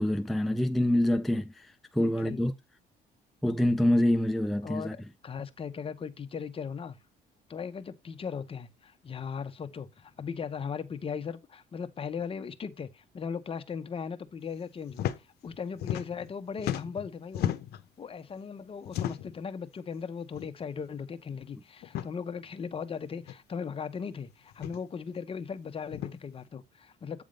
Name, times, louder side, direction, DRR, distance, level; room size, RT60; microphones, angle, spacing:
voice 1, 0.0-2.5 3.4-5.0, left 1 dB, ahead, 0.4 m, -26 dB
voice 2, 2.0-2.4 4.6-7.0 7.5-17.5 18.0-27.2, left 6 dB, 35° left, 0.9 m, -38 dB
sound 1, 14.9-15.2 15.5-16.3 16.6-17.8 18.8-19.4 20.3-20.5 20.8-20.9 21.8-22.1 23.2-23.3 24.5-24.8 25.9-26.1, left 11 dB, 70° left, 0.8 m, -34 dB
8.6 x 3.6 x 5.2 m
cardioid pair, 110°, 17 cm